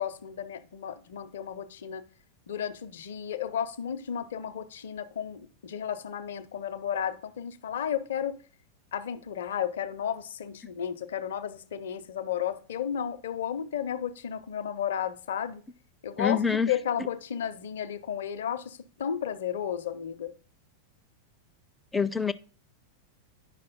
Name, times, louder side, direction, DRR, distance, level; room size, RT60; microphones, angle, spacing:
voice 1, 0.0-2.0 2.5-8.4 8.9-15.6 16.0-16.4 16.7-20.3, left 9 dB, 60° left, 0.6 m, -33 dB
voice 2, 16.2-16.7 21.9-22.3, left 6 dB, 10° left, 0.5 m, -25 dB
9.9 x 5.4 x 4.0 m
figure-of-eight pair, 90°, 0 cm